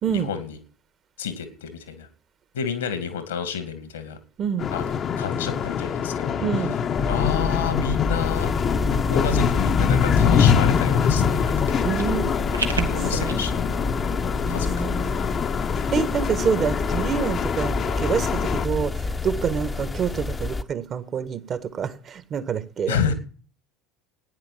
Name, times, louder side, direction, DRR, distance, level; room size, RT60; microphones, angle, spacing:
voice 1, 0.1-0.6 1.2-2.1 2.5-4.2 4.7-6.4 6.7-6.8 7.0-8.5 9.1-12.1 12.9-13.8 14.5-15.1 22.9-23.1, left 7 dB, 70° left, 2.3 m, -30 dB
sound 1, 4.6-18.7, left 7 dB, 35° left, 1.1 m, -24 dB
voice 2, 6.4-6.8 11.8-12.3 12.8-13.4 14.4-15.4 15.9-23.1, right 7 dB, 35° right, 1.6 m, -27 dB
sound 2, 7.0-20.6, left 3 dB, 15° left, 1.0 m, -28 dB
sound 3, 11.4-13.3, right 3 dB, 85° right, 1.5 m, -32 dB
16.0 x 10.0 x 5.8 m
figure-of-eight pair, 70°, 0 cm